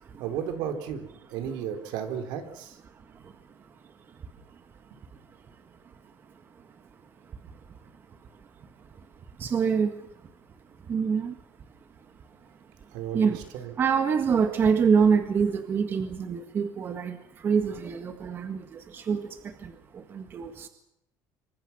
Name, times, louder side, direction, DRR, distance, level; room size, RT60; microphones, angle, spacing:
voice 1, 0.2-2.7 12.9-13.7, right 8 dB, 75° right, 6 dB, 4.1 m, -34 dB
voice 2, 2.9-11.4 12.0-20.7, right 6 dB, 30° right, 7 dB, 1.6 m, -29 dB
26.5 x 24.0 x 6.1 m, 0.77 s
cardioid pair, 165°, 8 cm